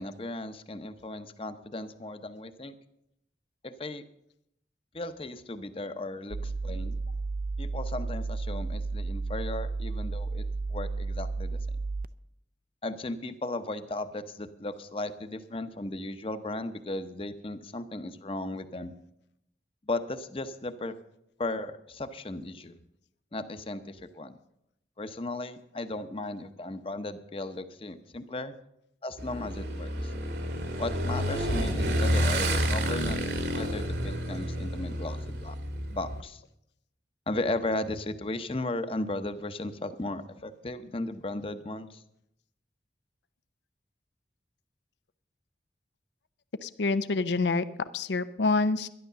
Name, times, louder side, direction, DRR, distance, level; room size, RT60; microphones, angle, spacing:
voice 1, 0.0-2.8 3.6-4.0 4.9-7.0 7.6-11.6 12.8-18.9 19.9-20.9 21.4-22.7 23.3-24.4 25.0-28.5 29.0-30.1 30.8-33.2 33.5-35.6 35.9-36.4 37.3-42.0, left 2 dB, 30° left, 10 dB, 0.8 m, -36 dB
sound 1, 6.3-12.1, right 3 dB, 50° right, 0.4 m, -32 dB
Motorcycle / Engine, 29.2-36.2, equal, 70° right, 1.9 m, -29 dB
voice 2, 46.6-47.6 47.9-48.9, left 3 dB, 80° left, 13 dB, 0.6 m, -26 dB
12.0 x 11.0 x 6.8 m, 0.78 s
head